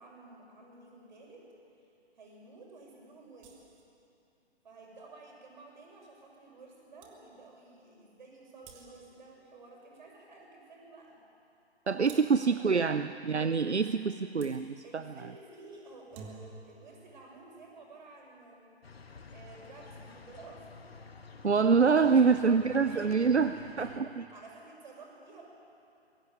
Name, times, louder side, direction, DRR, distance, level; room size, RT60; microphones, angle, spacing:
voice 1, 0.0-1.4 2.2-3.5 4.6-11.2 11.8-12.9 14.8-18.7 19.3-20.9 22.2-25.4, right 3 dB, 45° right, -1 dB, 7.1 m, -52 dB
sound 1, 3.4-3.9 6.6-6.7 7.0-7.2 8.6-9.2 12.1-12.5 14.4-14.6 15.9-16.7, right 5 dB, 15° right, 1.6 m, -50 dB
voice 2, 11.9-14.8 21.4-23.5 23.8-24.1, right 5 dB, 80° right, 11 dB, 0.8 m, -25 dB
sound 2, 18.8-24.0, left 4 dB, 65° left, 1.6 m, -51 dB
22.0 x 16.0 x 9.5 m, 2.8 s
figure-of-eight pair, 140°, 33 cm